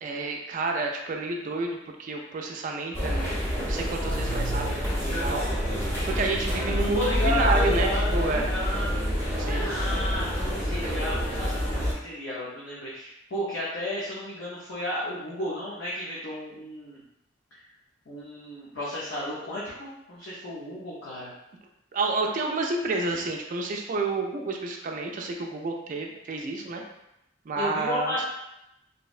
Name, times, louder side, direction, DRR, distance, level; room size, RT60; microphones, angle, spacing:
voice 1, 0.0-4.7 4.9-5.4 6.0-8.5 9.4-9.8 21.9-26.8 27.5-28.2, right 3 dB, 40° right, 2 dB, 0.3 m, -30 dB
sound 1, 2.9-11.9, equal, 15° left, 0.7 m, -27 dB
voice 2, 6.5-9.0 9.6-17.0 18.1-21.3 27.6-28.2, left 1 dB, 70° left, -8 dB, 0.6 m, -33 dB
2.6 x 2.1 x 2.4 m, 0.86 s
head